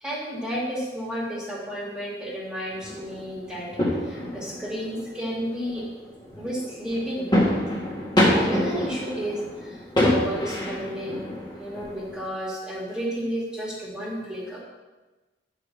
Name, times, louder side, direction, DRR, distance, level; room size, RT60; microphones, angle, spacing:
voice 1, 0.0-3.7 4.0-5.8 6.4-7.3 8.2-11.3 11.6-14.6, equal, 5° right, -5 dB, 2.1 m, -32 dB
sound 1, 2.7-12.3, left 1 dB, 25° left, 1.9 m, -27 dB
9.5 x 4.9 x 6.5 m, 1.2 s
head